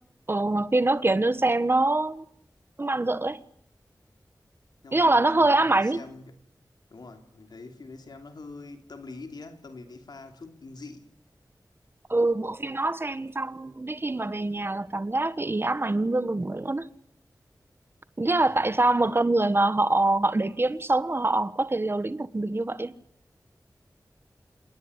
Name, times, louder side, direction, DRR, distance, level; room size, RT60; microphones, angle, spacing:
voice 1, 0.3-2.2 2.8-3.4 4.9-6.0 12.1-16.9 18.2-22.9, right 2 dB, 35° right, 1.4 m, -24 dB
voice 2, 1.2-1.5 4.8-6.4 6.9-11.1 18.3-19.2, left 3 dB, 90° left, 3.1 m, -45 dB
27.5 x 21.0 x 9.8 m
wide cardioid pair, 85°, 7 cm